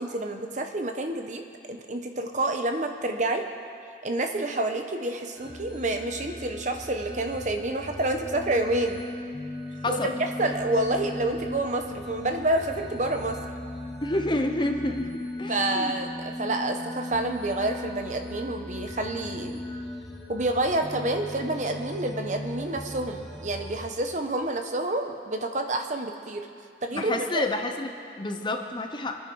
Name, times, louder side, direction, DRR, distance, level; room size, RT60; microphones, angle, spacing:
voice 1, 0.0-1.4 1.7-3.4 4.0-9.0 9.9-10.1 10.4-13.4 15.5-19.6 20.3-26.5 26.8-27.5, right 2 dB, 40° right, 5 dB, 1.1 m, -28 dB
sound 1, 5.4-23.9, left 1 dB, ahead, 1.5 m, -38 dB
voice 2, 9.8-10.2 14.0-15.1 15.4-15.9 26.9-29.2, left 2 dB, 25° left, 5 dB, 0.9 m, -29 dB
27.5 x 10.5 x 4.8 m, 2.3 s
head